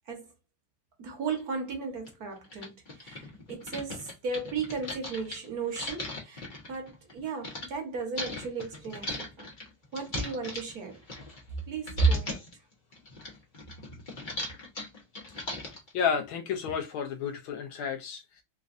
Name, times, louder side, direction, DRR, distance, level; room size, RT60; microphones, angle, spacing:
voice 1, 1.0-6.4 6.7-9.5 9.9-11.0 11.7-12.4, right 4 dB, 50° right, 1.3 m, -33 dB
sound 1, 1.4-1.5 2.1-2.2 2.4-7.7 8.2-11.6 11.9-12.5 12.9-15.9, left 1 dB, 45° left, 0.6 m, -38 dB
voice 2, 15.9-18.4, left 7 dB, 75° left, 1.3 m, -31 dB
4.0 x 2.4 x 2.5 m
omnidirectional pair, 2.4 m